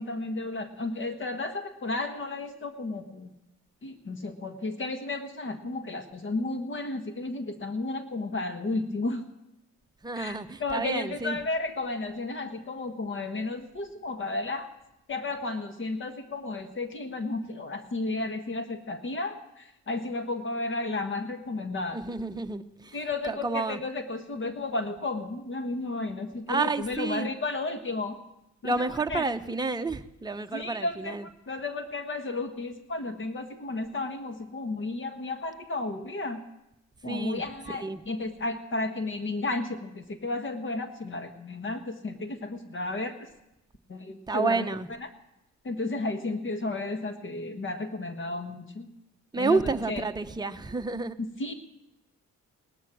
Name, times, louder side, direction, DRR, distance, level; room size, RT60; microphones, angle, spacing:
voice 1, 0.0-3.3 3.8-9.2 10.1-14.7 15.1-22.0 22.9-28.2 28.6-29.2 30.5-31.2 31.5-36.4 37.0-43.3 43.9-44.6 45.0-45.1 45.6-48.9 49.4-49.6 49.9-50.0 51.4-51.5, left 2 dB, 40° left, 7 dB, 1.5 m, -33 dB
voice 2, 10.0-11.4 21.9-23.0 23.2-23.8 26.5-27.3 28.6-31.3 37.0-37.4 37.7-38.0 44.3-44.9 49.3-51.2, right 3 dB, 15° right, 6 dB, 0.9 m, -30 dB
18.0 x 12.5 x 6.3 m, 0.88 s
cardioid pair, 90°, 30 cm